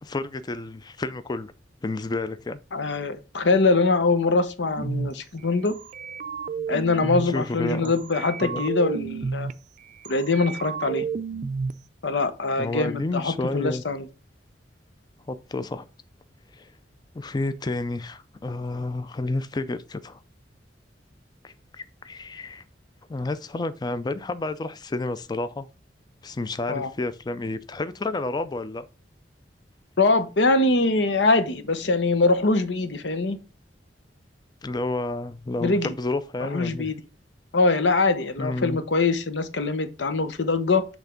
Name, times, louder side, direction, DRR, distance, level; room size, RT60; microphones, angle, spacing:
voice 1, 0.0-1.5 1.8-2.6 7.2-7.9 8.4-8.7 12.6-13.8 15.3-15.9 16.6-16.7 17.1-20.2 21.4-22.6 23.1-25.7 26.2-28.9 34.6-36.9 38.4-38.8, left 2 dB, 25° left, 0.4 m, -30 dB
voice 2, 2.7-5.7 6.7-9.5 10.1-11.1 12.0-14.0 26.7-26.9 30.0-33.4 35.6-35.9 36.4-37.0 37.5-40.9, left 3 dB, 85° left, 0.9 m, -23 dB
sound 1, 4.8-5.1 5.7-7.3 7.9-9.5 10.0-11.7, right 5 dB, 45° right, 0.4 m, -31 dB
8.1 x 3.5 x 5.1 m
head